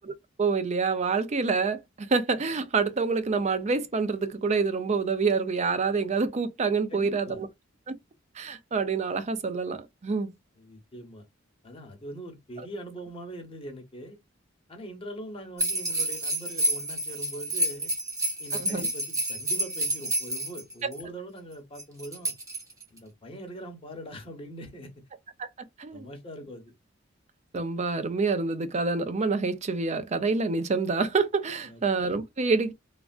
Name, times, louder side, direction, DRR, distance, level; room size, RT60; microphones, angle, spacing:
voice 1, 0.4-7.5 7.9-8.0 8.4-9.8 10.0-10.3 18.6-18.9 25.4-25.5 25.8-26.1 27.5-32.7, right 4 dB, 35° right, 0.5 m, -27 dB
voice 2, 6.9-7.4 10.6-11.3 11.6-14.2 14.7-17.9 18.4-22.3 22.9-24.9 25.9-26.7 31.6-31.8, right 1 dB, 30° left, 1.0 m, -42 dB
sound 1, 15.6-21.0 21.8-23.0, right 1 dB, 15° right, 1.1 m, -29 dB
3.3 x 2.4 x 2.4 m
head